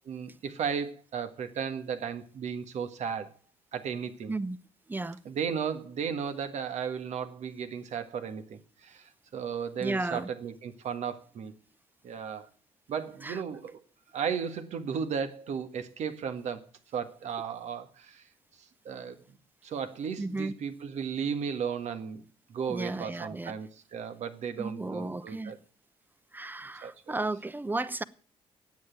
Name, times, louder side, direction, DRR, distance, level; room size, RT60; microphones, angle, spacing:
voice 1, 0.0-3.3 3.7-4.3 5.2-11.5 12.0-12.5 12.9-13.8 14.1-16.7 16.9-18.2 18.8-19.2 19.6-22.2 22.5-25.6 26.8-27.2, right 7 dB, 65° right, 1.6 m, -35 dB
voice 2, 4.9-5.2 9.8-10.3 13.2-13.4 20.2-20.5 22.7-23.5 24.6-25.5 26.3-28.0, right 2 dB, 15° right, 0.9 m, -34 dB
9.3 x 8.5 x 9.1 m
supercardioid pair, 60°, 13 cm